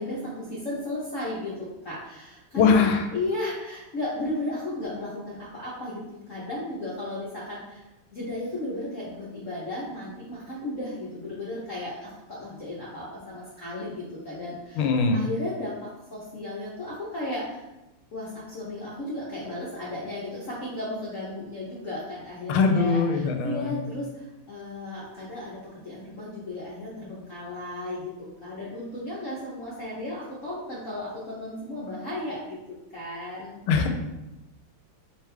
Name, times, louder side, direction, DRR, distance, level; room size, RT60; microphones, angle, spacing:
voice 1, 0.0-17.6 18.1-28.1 28.4-32.6 32.9-33.6, left 1 dB, 55° left, -7 dB, 0.8 m, -35 dB
voice 2, 2.5-3.0 14.8-15.2 22.5-23.7 33.7-33.9, left 5 dB, 75° left, 5 dB, 1.4 m, -21 dB
3.4 x 3.3 x 3.3 m, 0.96 s
omnidirectional pair, 2.4 m